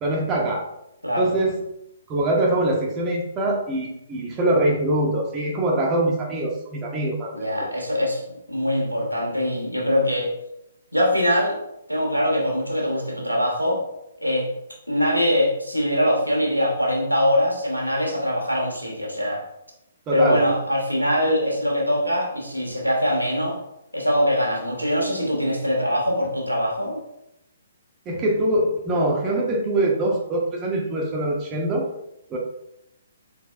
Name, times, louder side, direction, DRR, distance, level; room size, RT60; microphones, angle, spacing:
voice 1, 0.0-0.6 1.2-1.6 2.1-7.3 7.6-7.7 20.1-20.4 28.1-31.9 32.3-32.4, right 1 dB, 20° right, -1 dB, 0.7 m, -23 dB
voice 2, 1.0-1.3 7.3-8.2 8.5-10.3 10.9-11.6 11.9-13.8 14.2-14.5 14.9-19.4 20.1-23.6 23.9-27.0, equal, 90° right, -1 dB, 1.2 m, -22 dB
4.2 x 3.9 x 2.4 m, 0.82 s
figure-of-eight pair, 130°, 0 cm